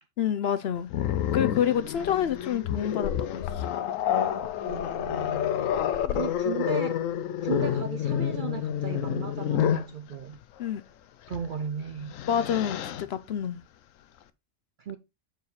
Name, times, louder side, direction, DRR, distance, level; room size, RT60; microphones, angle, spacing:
voice 1, 0.2-0.9 1.3-3.7 6.0-6.2 10.6-10.8 12.3-13.6, left 9 dB, 65° left, 0.7 m, -28 dB
Growling, 0.9-9.9 11.3-11.5 11.9-13.0, left 10 dB, 85° left, 1.0 m, -29 dB
voice 2, 4.6-5.5 6.1-7.0 7.4-10.4 11.3-12.1 14.8-15.0, right 7 dB, 60° right, 0.5 m, -35 dB
7.0 x 6.4 x 3.1 m
omnidirectional pair, 1.3 m